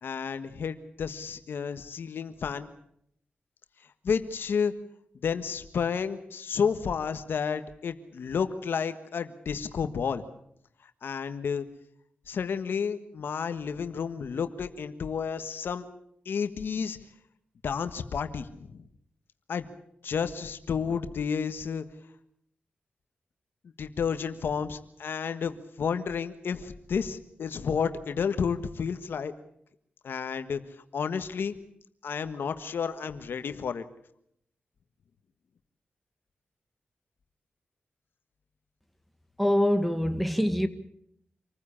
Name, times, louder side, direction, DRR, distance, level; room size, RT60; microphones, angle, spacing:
voice 1, 0.0-2.7 4.0-4.7 5.2-10.2 11.0-11.6 12.3-15.8 16.2-17.0 17.6-18.8 19.5-19.7 20.0-21.8 23.8-29.3 30.0-30.6 30.9-31.6 32.0-33.8, left 6 dB, 80° left, 1.4 m, -31 dB
voice 2, 39.4-40.7, left 1 dB, ahead, 1.8 m, -24 dB
26.5 x 15.0 x 8.8 m
cardioid pair, 65°, 4 cm